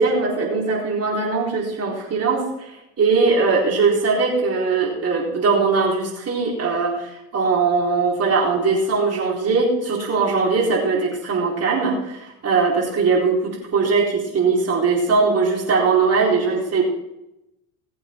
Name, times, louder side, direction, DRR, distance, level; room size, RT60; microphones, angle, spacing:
voice 1, 0.0-16.8, right 4 dB, 30° right, -2 dB, 4.2 m, -20 dB
19.0 x 8.2 x 4.5 m, 0.88 s
supercardioid pair, 100°, 47 cm